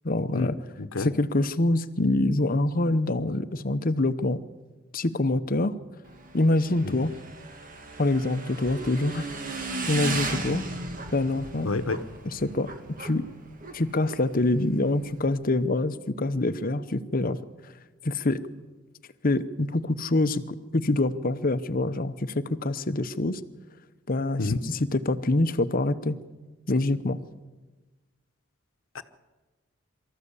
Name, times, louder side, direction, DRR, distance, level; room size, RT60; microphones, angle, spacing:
voice 1, 0.0-0.6 1.0-4.4 4.9-5.7 6.3-7.1 8.0-9.3 9.9-10.6 11.1-11.9 12.3-13.2 13.7-17.4 18.0-18.4 19.2-23.4 24.1-26.2 26.7-27.2, left 2 dB, 45° left, 12 dB, 0.9 m, -25 dB
voice 2, 0.8-1.1 6.8-7.0 11.6-12.0 24.4-24.6 28.9-29.0, left 3 dB, 80° left, 11 dB, 1.1 m, -28 dB
Motorcycle / Engine, 6.0-15.3, right 2 dB, 40° right, 2.0 m, -36 dB
24.5 x 13.5 x 8.4 m, 1.2 s
head